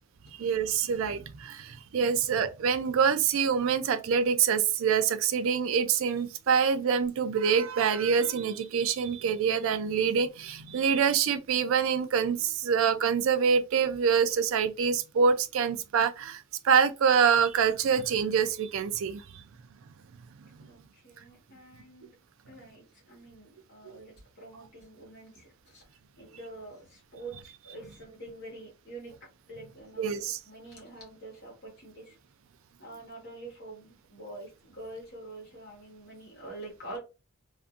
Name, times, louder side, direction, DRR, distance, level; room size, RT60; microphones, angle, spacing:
voice 1, 0.3-19.4 30.0-30.4, right 6 dB, 70° right, 0.3 m, -26 dB
voice 2, 20.6-22.1 22.4-25.8 26.2-29.1 29.5-32.2 32.8-37.0, right 2 dB, 50° left, 1.2 m, -46 dB
2.5 x 2.5 x 2.4 m
head